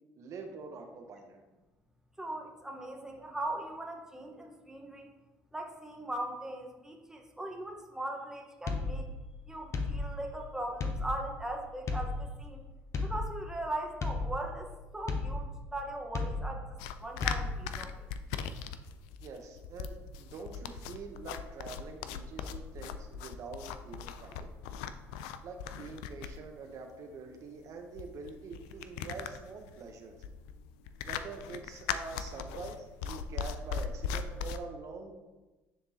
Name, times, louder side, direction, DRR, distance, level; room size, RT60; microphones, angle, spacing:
voice 1, 0.2-1.4 19.2-24.5 25.4-30.1 31.0-35.1, right 4 dB, 55° right, 4 dB, 0.8 m, -45 dB
voice 2, 2.2-5.1 5.5-9.1 9.5-12.6 13.0-18.1, right 1 dB, 10° right, 1 dB, 1.1 m, -39 dB
sound 1, 8.7-9.4 9.7-10.4 10.8-11.5 11.9-12.6 12.9-13.6 14.0-14.7 15.1-15.8 16.1-16.9 17.2-17.8, left 3 dB, 45° left, 0.9 m, -35 dB
sound 2, 16.8-34.6, left 7 dB, 80° left, 0.4 m, -39 dB
9.7 x 3.6 x 2.8 m, 1.1 s
supercardioid pair, 75°, 7 cm